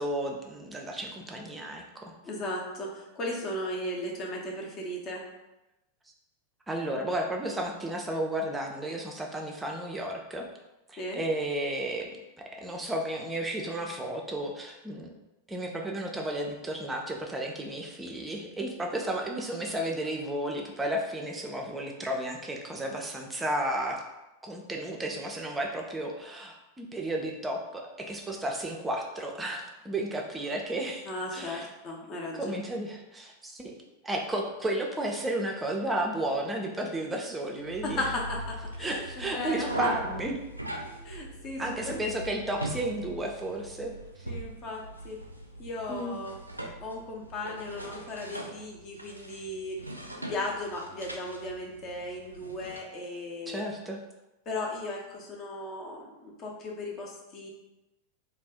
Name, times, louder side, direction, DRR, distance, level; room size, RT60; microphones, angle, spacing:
voice 1, 0.0-2.1 6.7-10.5 10.9-12.1 12.4-15.1 15.5-24.0 24.4-31.7 32.4-38.0 38.8-40.4 41.6-44.3 45.9-46.2 53.5-54.0, right 1 dB, 10° right, 1 dB, 0.5 m, -33 dB
voice 2, 2.2-5.2 11.0-11.2 31.1-32.5 38.0-39.7 41.0-42.0 44.2-45.2 45.6-46.4 46.8-49.9 50.2-53.6 54.5-57.5, left 1 dB, 30° left, -1 dB, 0.7 m, -36 dB
sound 1, 37.6-52.8, right 1 dB, 85° right, 0.4 m, -41 dB
2.5 x 2.4 x 3.4 m, 0.97 s
figure-of-eight pair, 90°, 0 cm